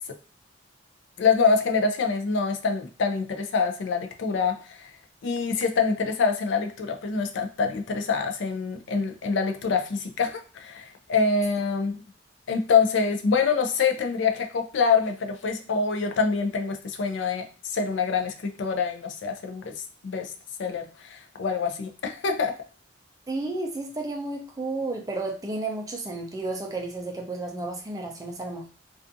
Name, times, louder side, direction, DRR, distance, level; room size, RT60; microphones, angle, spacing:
voice 1, 1.2-4.9 5.2-12.0 12.5-19.7 20.0-20.3 20.6-22.6, left 5 dB, 65° left, 4 dB, 0.4 m, -25 dB
voice 2, 23.3-28.7, right 2 dB, 20° right, 1 dB, 0.4 m, -32 dB
2.5 x 2.3 x 2.5 m, 0.37 s
head